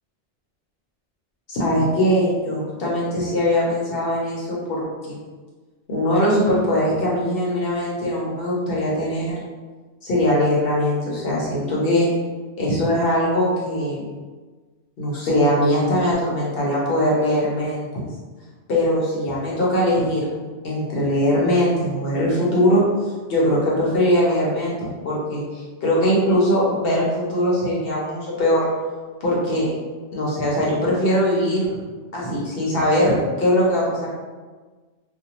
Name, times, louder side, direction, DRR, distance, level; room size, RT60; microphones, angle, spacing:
voice 1, 1.5-5.2 5.9-9.3 10.0-12.1 12.6-14.0 15.0-17.9 18.7-20.3 20.6-22.8 23.3-28.6 29.2-29.7 30.1-31.7 32.1-34.1, equal, 60° left, -5 dB, 0.9 m, -21 dB
2.5 x 2.1 x 2.8 m, 1.3 s
omnidirectional pair, 1.2 m